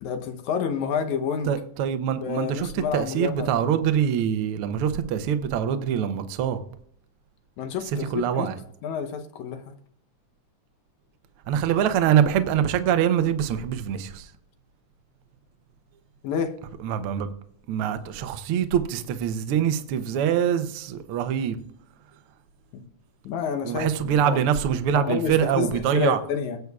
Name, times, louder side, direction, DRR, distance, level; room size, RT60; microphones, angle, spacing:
voice 1, 0.0-1.5 2.2-3.6 7.6-8.5 8.8-9.7 16.2-16.5 22.7-22.8 23.2-24.4 24.9-26.6, left 6 dB, 75° left, 2.2 m, -29 dB
voice 2, 1.5-6.6 8.1-8.6 11.5-14.3 16.8-17.3 17.7-21.6 23.6-26.2, right 9 dB, 80° right, 1.2 m, -24 dB
18.5 x 8.0 x 2.3 m
omnidirectional pair, 3.5 m